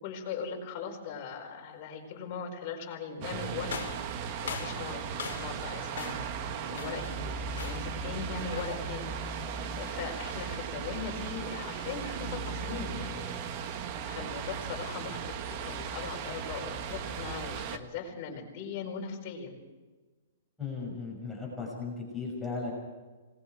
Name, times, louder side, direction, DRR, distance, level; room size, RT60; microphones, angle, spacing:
voice 1, 0.0-3.8 4.1-6.3 6.7-9.1 9.7-13.5 14.0-19.6, left 5 dB, 30° left, 1 dB, 4.8 m, -39 dB
sound 1, 3.2-17.8, right 6 dB, 30° right, 1.4 m, -37 dB
sound 2, 3.7-5.7 6.0-6.4 6.7-7.1 7.6-8.0 8.5-8.9, left 7 dB, 75° left, 2.2 m, -41 dB
voice 2, 20.6-22.7, left 4 dB, 5° left, -4 dB, 6.0 m, -36 dB
27.0 x 20.5 x 4.7 m, 1.3 s
hypercardioid pair, 170°, 0 cm